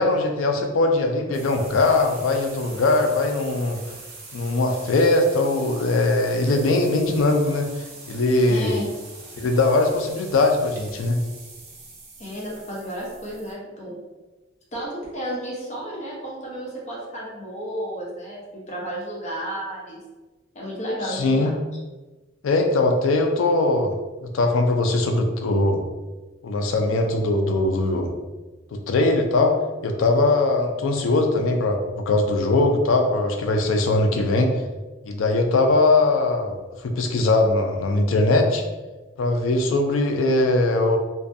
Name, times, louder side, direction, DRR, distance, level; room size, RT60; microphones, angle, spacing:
voice 1, 0.0-3.8 4.3-8.7 9.4-11.2 21.0-21.5 22.4-24.0 24.2-25.8 26.4-28.1 28.7-29.5 29.8-34.5 35.0-38.6 39.2-41.0, left 2 dB, 85° left, 4 dB, 0.4 m, -21 dB
sound 1, 1.3-13.5, right 3 dB, 50° right, 0.6 m, -43 dB
voice 2, 8.4-8.9 12.2-13.9 14.7-20.0 20.5-21.5, equal, 35° left, -4 dB, 0.7 m, -32 dB
2.5 x 2.2 x 2.5 m, 1.2 s
head